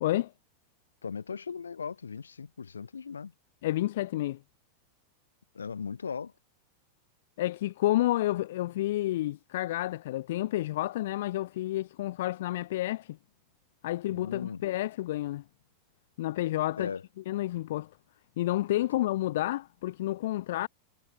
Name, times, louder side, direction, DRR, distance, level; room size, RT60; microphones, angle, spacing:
voice 1, 0.0-0.3 3.6-4.4 7.4-13.2 13.8-15.4 16.2-16.9 17.3-17.9 18.4-20.7, left 15 dB, 55° left, 0.6 m, -30 dB
voice 2, 1.0-3.3 5.5-6.3 14.1-14.6 16.7-17.0, left 6 dB, 70° left, 1.6 m, -38 dB
figure-of-eight pair, 90°, 0 cm